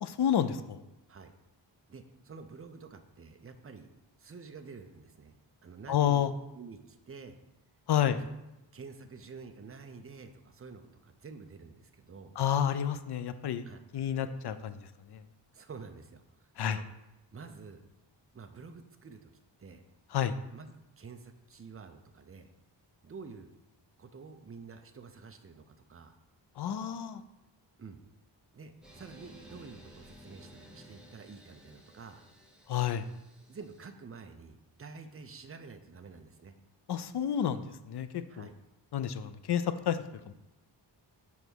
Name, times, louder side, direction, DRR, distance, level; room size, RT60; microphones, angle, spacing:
voice 1, 0.0-0.8 5.9-6.3 7.9-8.2 12.4-13.7 13.9-14.8 15.1-15.2 16.6-16.8 20.1-20.4 26.6-27.2 32.7-33.1 36.9-38.5 38.9-40.3, left 9 dB, 60° left, 12 dB, 0.5 m, -30 dB
voice 2, 1.9-3.9 4.2-5.3 5.6-6.2 6.5-7.4 8.0-8.3 8.7-12.4 13.6-13.8 15.5-16.8 17.3-17.8 18.3-19.3 19.6-19.8 20.5-22.5 23.0-23.5 24.0-26.2 27.8-28.0 28.5-32.2 33.5-36.6 38.3-38.5, right 4 dB, 30° right, 7 dB, 0.5 m, -49 dB
sound 1, 28.8-33.8, equal, ahead, 1.1 m, -55 dB
7.1 x 3.4 x 6.2 m, 0.96 s
wide cardioid pair, 175°, 45 cm